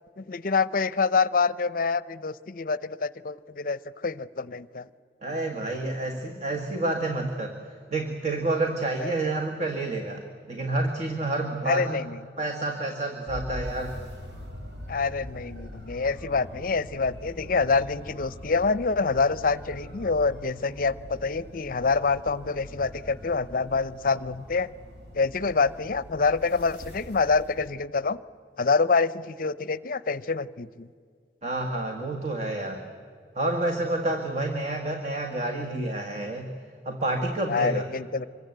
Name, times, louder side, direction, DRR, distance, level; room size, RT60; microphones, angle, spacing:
voice 1, 0.2-4.9 9.0-9.3 11.7-12.2 14.9-24.7 25.1-28.2 28.6-30.9 37.5-38.2, left 4 dB, 50° left, 17 dB, 0.6 m, -26 dB
voice 2, 5.2-7.6 7.9-12.0 12.4-14.0 31.4-32.9 33.3-36.5 36.8-37.8, right 2 dB, 40° right, 4 dB, 1.7 m, -29 dB
sound 1, 13.3-27.7, left 1 dB, 75° right, 4.3 m, -43 dB
26.0 x 23.5 x 8.0 m, 2.2 s
head